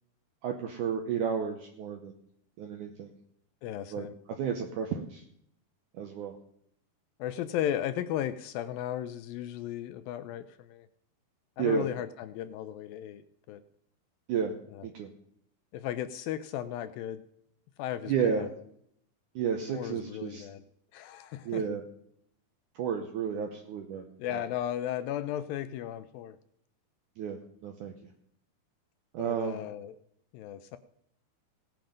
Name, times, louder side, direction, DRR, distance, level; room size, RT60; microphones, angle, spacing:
voice 1, 0.4-2.1 2.6-3.1 3.9-4.1 4.4-5.2 6.0-6.4 11.6-11.9 14.3-14.5 14.8-15.1 18.1-18.5 19.4-20.5 21.5-21.8 22.8-24.0 27.2-27.9 29.1-29.6, right 7 dB, 75° right, 3 dB, 1.9 m, -32 dB
voice 2, 3.6-4.1 7.2-10.9 11.6-13.2 13.5-13.6 14.7-14.9 15.7-17.2 17.8-18.5 19.7-20.6 20.9-21.7 24.2-26.4 29.2-29.9 30.3-30.8, left 11 dB, 80° left, 12 dB, 2.1 m, -35 dB
17.5 x 7.7 x 5.2 m, 0.70 s
omnidirectional pair, 4.6 m